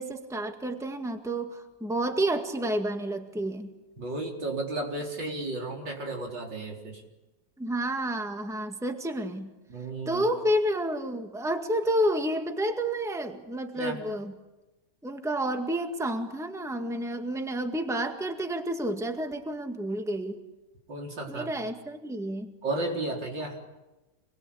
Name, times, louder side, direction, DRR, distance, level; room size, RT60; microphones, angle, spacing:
voice 1, 0.0-3.7 7.6-9.5 10.1-14.3 15.0-20.4 21.3-22.5, right 1 dB, ahead, 5 dB, 1.8 m, -30 dB
voice 2, 4.0-7.0 9.7-10.3 13.8-14.0 20.9-21.5 22.6-23.6, right 2 dB, 85° right, 0 dB, 5.0 m, -33 dB
27.5 x 21.5 x 8.7 m, 1.0 s
omnidirectional pair, 1.9 m